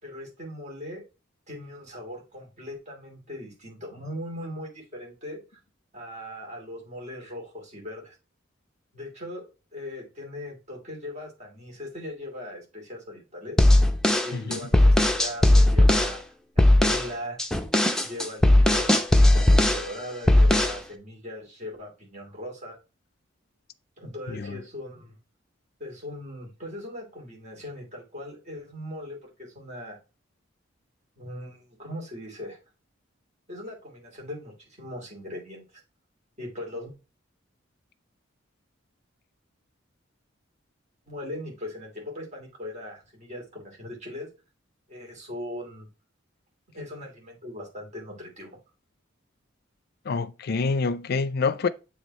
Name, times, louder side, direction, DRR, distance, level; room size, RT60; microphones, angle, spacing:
voice 1, 0.0-1.0 1.5-5.4 5.9-8.1 8.9-13.6 14.2-16.2 16.5-17.4 18.0-22.8 24.0-25.2 25.8-30.0 31.2-32.6 33.5-35.6 36.4-36.9 41.1-44.3 44.9-45.9 46.7-48.6, left 1 dB, 35° right, 2.6 m, -39 dB
sound 1, 13.6-16.2 16.6-17.1 17.4-19.9 20.3-20.8, left 1 dB, 5° left, 0.6 m, -18 dB
voice 2, 14.3-14.7 24.3-24.6 50.1-51.7, left 4 dB, 55° left, 0.5 m, -27 dB
7.3 x 3.5 x 4.1 m
head